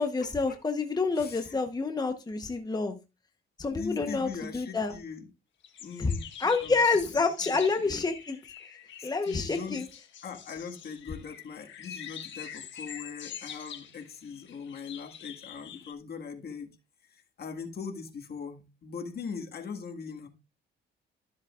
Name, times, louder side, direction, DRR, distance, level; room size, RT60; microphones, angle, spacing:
voice 1, 0.0-3.0 3.6-4.9 6.0-6.1 6.4-8.4 9.0-9.9, left 4 dB, 20° left, 1.0 m, -28 dB
voice 2, 1.2-1.6 3.7-5.3 5.8-6.3 6.6-8.0 9.0-9.9 10.2-16.7 17.1-20.3, left 5 dB, 55° left, 1.8 m, -41 dB
sound 1, 5.6-15.9, left 8 dB, 70° left, 1.3 m, -45 dB
13.0 x 7.1 x 2.4 m
cardioid pair, 90°, 20 cm